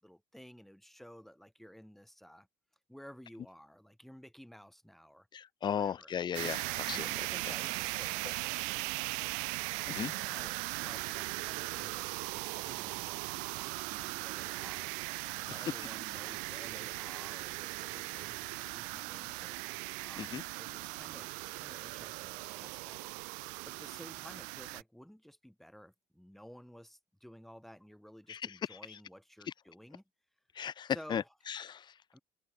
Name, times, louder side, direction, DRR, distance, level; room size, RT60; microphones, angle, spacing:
voice 1, 0.0-2.5 2.9-5.3 5.6-6.1 6.9-8.6 9.8-14.9 15.4-19.6 20.0-21.3 21.5-23.0 23.6-30.0 30.9-31.3 32.1-32.2, equal, ahead, 6.3 m, -54 dB
voice 2, 5.3-7.1 9.9-10.1 15.5-15.6 20.2-20.4 28.3-29.0 30.5-31.9, left 8 dB, 35° left, 0.6 m, -36 dB
sound 1, 6.3-24.8, right 39 dB, 85° right, 0.5 m, -39 dB
open air
supercardioid pair, 95°, 13 cm